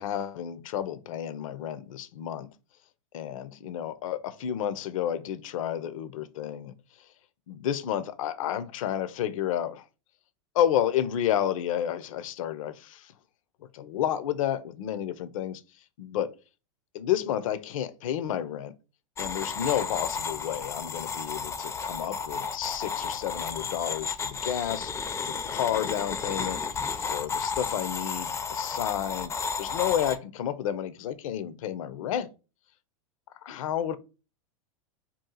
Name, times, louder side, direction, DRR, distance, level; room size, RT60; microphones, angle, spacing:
voice 1, 0.0-2.5 3.1-6.7 7.5-9.8 10.5-13.1 13.7-15.6 16.0-16.4 16.9-18.7 19.2-29.3 29.6-32.3 33.4-34.0, left 10 dB, 70° left, 0.5 m, -31 dB
sound 1, 19.2-30.2, left 5 dB, 15° left, 0.4 m, -33 dB
2.8 x 2.4 x 3.8 m
hypercardioid pair, 110°, 17 cm